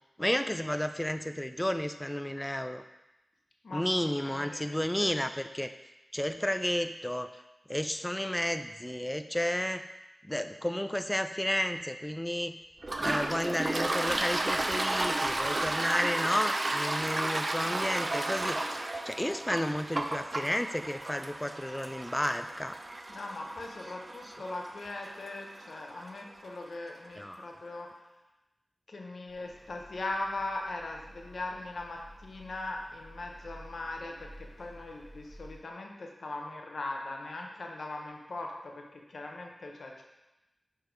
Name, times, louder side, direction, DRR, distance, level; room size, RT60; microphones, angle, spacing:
voice 1, 0.2-2.8 3.7-5.7 6.1-7.3 7.7-9.8 10.2-12.6 13.0-18.6 19.0-22.8 24.2-24.3 27.2-27.5, left 1 dB, 10° left, 8 dB, 0.3 m, -32 dB
voice 2, 3.6-5.2 23.1-27.9 28.9-40.0, left 2 dB, 80° left, 1 dB, 0.8 m, -40 dB
Toilet flush, 12.8-26.2, right 2 dB, 50° right, 0.5 m, -33 dB
sound 1, 29.3-35.6, equal, 20° right, 1.7 m, -52 dB
6.5 x 3.5 x 4.5 m, 0.98 s
cardioid pair, 40°, 0 cm